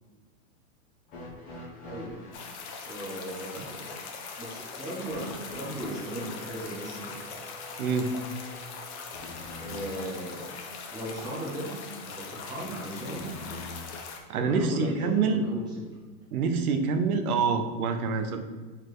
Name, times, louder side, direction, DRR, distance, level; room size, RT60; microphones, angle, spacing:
sound 1, 1.1-2.5 5.1-10.2 13.1-14.2 15.4-15.5 16.5-16.6, left 1 dB, 20° left, 1.0 m, -45 dB
voice 1, 1.9-2.2 2.8-4.1 4.4-7.2 9.6-10.6 10.9-13.3 14.3-15.8, right 1 dB, 10° right, -6 dB, 1.1 m, -37 dB
sound 2, 2.3-14.2, left 5 dB, 50° left, 1.0 m, -41 dB
voice 2, 7.8-8.2 14.3-15.4 16.3-18.4, right 5 dB, 85° right, 6 dB, 1.0 m, -26 dB
4.7 x 4.2 x 4.8 m, 1.4 s
supercardioid pair, 175°, 43 cm